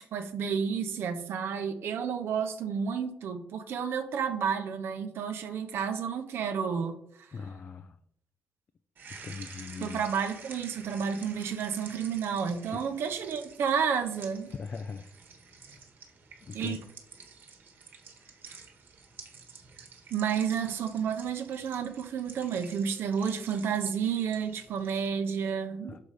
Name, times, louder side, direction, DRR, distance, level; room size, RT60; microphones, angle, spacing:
voice 1, 0.1-7.3 9.8-14.5 16.5-16.8 20.1-26.0, right 7 dB, 75° right, 6 dB, 0.7 m, -31 dB
voice 2, 7.3-8.0 9.2-10.0 12.7-12.8 14.5-15.1 16.4-16.8 25.9-26.0, left 5 dB, 45° left, 10 dB, 0.4 m, -40 dB
sound 1, 9.0-25.1, right 5 dB, 55° right, 1.3 m, -50 dB
6.4 x 4.1 x 4.9 m, 0.72 s
cardioid pair, 90°, 4 cm